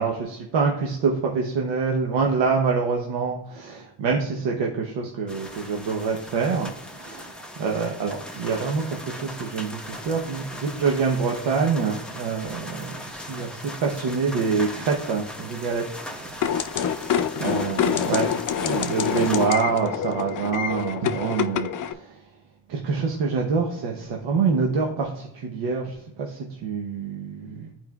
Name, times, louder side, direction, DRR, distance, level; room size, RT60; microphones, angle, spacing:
voice 1, 0.0-18.3 18.6-22.3 22.7-27.7, right 5 dB, 80° right, 0 dB, 0.9 m, -26 dB
sound 1, 5.3-19.5, left 1 dB, ahead, 0.8 m, -39 dB
sound 2, 16.4-21.9, left 8 dB, 45° left, 0.5 m, -26 dB
10.5 x 4.4 x 2.3 m, 0.77 s
cardioid pair, 70°, 43 cm